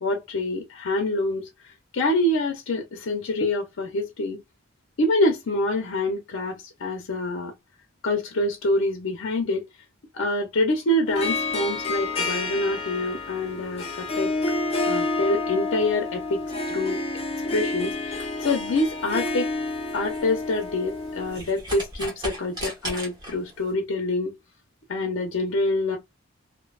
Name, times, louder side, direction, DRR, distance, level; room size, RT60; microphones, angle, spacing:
voice 1, 0.0-4.4 5.0-7.5 8.0-9.7 10.1-14.3 14.8-17.0 17.5-19.5 19.9-24.3 24.9-26.0, left 1 dB, 75° left, 0.6 m, -26 dB
Harp, 11.1-21.4, left 2 dB, 30° left, 0.5 m, -29 dB
sound 1, 17.9-23.7, right 1 dB, 20° right, 0.9 m, -39 dB
2.6 x 2.1 x 2.2 m
head